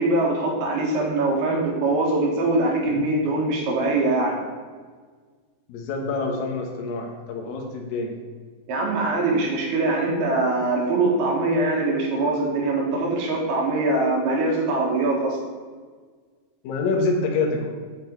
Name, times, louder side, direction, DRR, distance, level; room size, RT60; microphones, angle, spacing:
voice 1, 0.0-4.4 8.7-15.4, right 2 dB, 75° right, -2 dB, 3.4 m, -22 dB
voice 2, 5.7-8.2 16.6-17.7, left 3 dB, 65° left, 0 dB, 2.7 m, -26 dB
8.3 x 7.8 x 4.5 m, 1.5 s
omnidirectional pair, 4.7 m